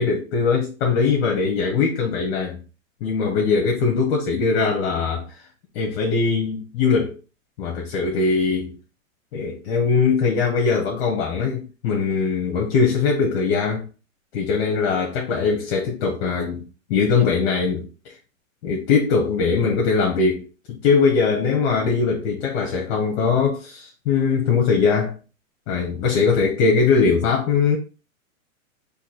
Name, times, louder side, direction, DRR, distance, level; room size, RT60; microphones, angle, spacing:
voice 1, 0.0-2.6 3.0-5.4 5.7-7.2 7.6-8.7 9.3-13.8 14.3-16.6 16.9-18.1 18.6-25.1 25.7-27.8, left 5 dB, 45° left, 1.0 m, -21 dB
4.1 x 2.8 x 4.1 m
hypercardioid pair, 145°, 41 cm